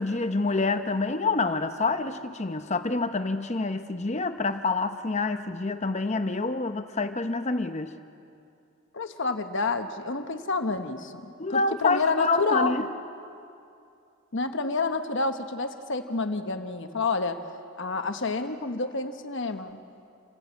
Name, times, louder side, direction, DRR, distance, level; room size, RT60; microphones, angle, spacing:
voice 1, 0.0-7.9 11.4-12.9, left 3 dB, 30° left, 9 dB, 0.8 m, -27 dB
voice 2, 8.9-12.8 14.3-17.4 17.8-19.8, left 3 dB, 55° left, 7 dB, 1.1 m, -29 dB
27.5 x 15.5 x 8.3 m, 2.5 s
head